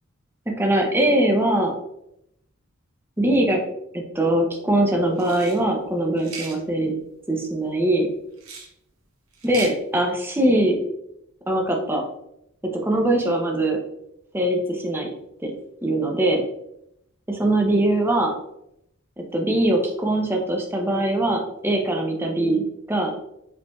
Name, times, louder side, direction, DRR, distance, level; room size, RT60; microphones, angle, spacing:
voice 1, 0.5-1.7 3.2-3.6 3.9-6.9 7.3-8.1 9.4-10.8 11.5-12.0 12.8-13.8 14.3-15.1 15.4-15.5 15.8-16.4 17.3-18.3 19.2-22.6 22.9-23.1, right 1 dB, 10° right, 1 dB, 0.5 m, -22 dB
sound 1, 5.2-5.6 6.2-6.6 8.4-8.7 9.3-9.7, right 4 dB, 85° right, 0.9 m, -36 dB
5.1 x 3.2 x 2.3 m, 0.79 s
head